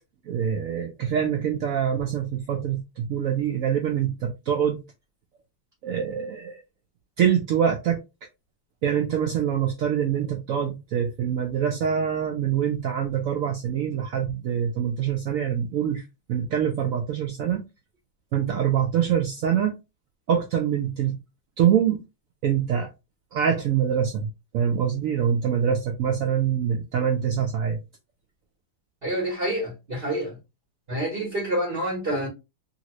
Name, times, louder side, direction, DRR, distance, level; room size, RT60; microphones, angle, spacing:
voice 1, 0.3-4.8 5.8-6.6 7.2-8.0 8.8-16.0 16.3-17.6 18.3-19.8 20.3-21.2 21.6-22.0 22.4-22.9 23.3-24.3 24.5-27.8, right 8 dB, 90° right, 0.7 m, -24 dB
voice 2, 29.0-30.4 30.9-32.3, right 1 dB, 35° right, 1.3 m, -27 dB
2.9 x 2.8 x 2.9 m
omnidirectional pair, 2.0 m